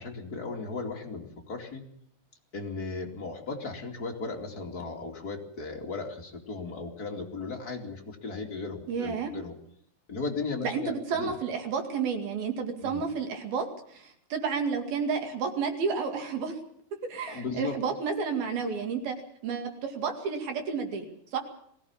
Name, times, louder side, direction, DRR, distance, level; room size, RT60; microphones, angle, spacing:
voice 1, 0.0-1.8 2.5-9.5 10.1-11.3 12.8-13.0 17.3-17.8, left 4 dB, 30° left, 1 dB, 1.8 m, -36 dB
voice 2, 8.9-9.3 10.6-16.6 17.1-19.2 19.4-21.4, right 5 dB, 55° right, 5 dB, 3.7 m, -31 dB
22.0 x 16.5 x 7.3 m, 0.66 s
omnidirectional pair, 5.7 m